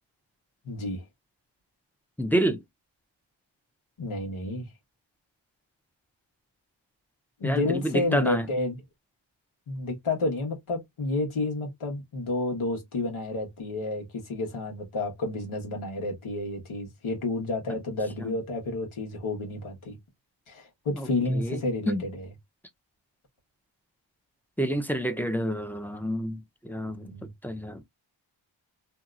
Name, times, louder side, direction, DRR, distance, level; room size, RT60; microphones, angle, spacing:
voice 1, 0.6-1.0 4.0-4.7 7.4-8.8 9.7-20.0 20.5-22.3 26.9-27.3, left 2 dB, 85° left, 1.4 m, -30 dB
voice 2, 2.2-2.6 7.4-8.5 17.7-17.8 18.2-18.3 20.9-21.1 21.3-21.6 21.9-22.0 24.6-27.1 27.4-27.8, equal, 5° left, 0.5 m, -28 dB
2.8 x 2.7 x 2.4 m
wide cardioid pair, 100°, 48 cm